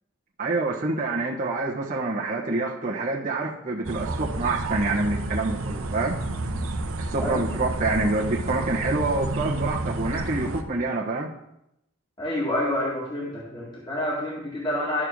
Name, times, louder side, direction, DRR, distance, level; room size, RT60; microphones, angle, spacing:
voice 1, 0.4-6.2 7.0-11.3, right 2 dB, 40° right, -3 dB, 1.2 m, -27 dB
sound 1, 3.8-10.6, right 2 dB, 75° right, 0.9 m, -30 dB
voice 2, 12.2-15.0, left 1 dB, 20° left, -5 dB, 1.9 m, -28 dB
12.5 x 4.5 x 6.4 m, 0.83 s
head